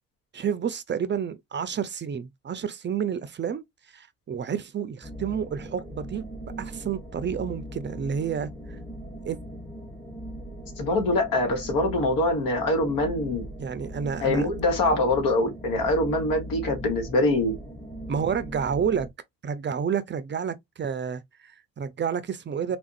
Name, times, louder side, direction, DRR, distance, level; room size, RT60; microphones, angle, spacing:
voice 1, 0.3-3.6 3.9-6.3 6.6-8.5 9.2-9.4 13.6-14.5 18.1-19.1 19.4-22.8, right 7 dB, 35° right, 0.4 m, -30 dB
sound 1, 5.0-19.1, equal, 5° left, 0.9 m, -39 dB
voice 2, 10.8-13.4 14.2-17.5, left 2 dB, 80° left, 1.3 m, -24 dB
3.4 x 2.5 x 2.4 m
cardioid pair, 75°, 33 cm